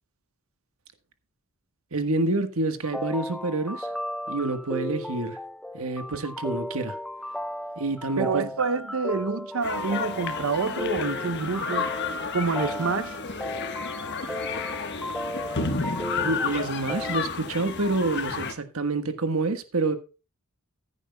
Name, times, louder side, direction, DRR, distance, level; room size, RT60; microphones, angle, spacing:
voice 1, 1.9-3.9 4.3-5.4 5.7-7.0 7.8-8.6 15.3-15.6 16.2-20.0, right 2 dB, 85° right, 1.4 m, -28 dB
sound 1, 2.8-17.2, left 1 dB, ahead, 0.4 m, -35 dB
voice 2, 8.2-11.9 12.3-13.2, right 4 dB, 70° right, 0.7 m, -27 dB
sound 2, 9.6-18.5, left 4 dB, 55° left, 1.3 m, -31 dB
15.0 x 10.0 x 2.3 m
head